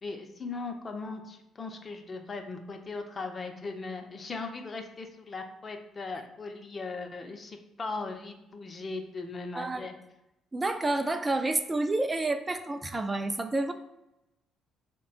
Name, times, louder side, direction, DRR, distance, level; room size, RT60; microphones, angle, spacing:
voice 1, 0.0-9.9, left 3 dB, 40° left, 5 dB, 0.6 m, -38 dB
voice 2, 9.6-9.9 10.5-13.7, right 2 dB, 25° right, 7 dB, 0.4 m, -29 dB
3.4 x 2.2 x 3.9 m, 0.91 s
supercardioid pair, 60°, 0 cm